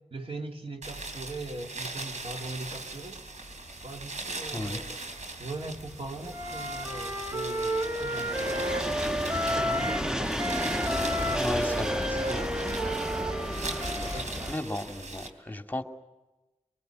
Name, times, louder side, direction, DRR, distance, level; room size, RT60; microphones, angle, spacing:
voice 1, 0.1-3.2 3.8-5.0 5.4-8.9 9.3-10.3 11.2-11.5 12.2-12.7 14.0-14.6, right 2 dB, 50° right, 2 dB, 3.1 m, -40 dB
sound 1, 0.8-15.3, right 2 dB, 80° right, 3.7 m, -40 dB
sound 2, 3.6-14.5, equal, 5° right, 1.3 m, -34 dB
Wind instrument woodwind instrument, 6.3-10.1 10.4-14.2, equal, 25° right, 3.4 m, -32 dB
voice 2, 11.3-12.5 13.8-15.8, left 1 dB, 15° left, 4 dB, 2.4 m, -35 dB
24.0 x 22.0 x 9.3 m, 1.1 s
cardioid pair, 40°, 12 cm